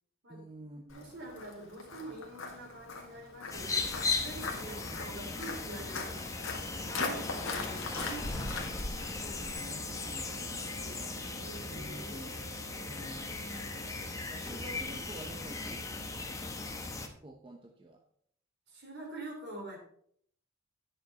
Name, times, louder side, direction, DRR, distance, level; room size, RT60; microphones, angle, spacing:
voice 1, 0.3-1.1 4.6-5.4 8.5-11.2 11.7-12.5 12.9-16.2 17.2-18.0, right 1 dB, 25° right, 2 dB, 0.8 m, -50 dB
Walk footsteps, 0.9-9.5, left 3 dB, 80° left, 1.7 m, -40 dB
voice 2, 0.9-3.9 4.2-6.3 6.8-8.3 10.7-11.0 11.4-12.2 13.2-14.0 18.7-19.8, right 2 dB, 55° right, 1 dB, 2.9 m, -46 dB
sound 1, 3.5-17.1, left 3 dB, 15° left, 1.0 m, -38 dB
Wind instrument woodwind instrument, 8.7-16.6, right 11 dB, 80° right, 1.1 m, -55 dB
10.5 x 6.7 x 4.1 m, 0.65 s
head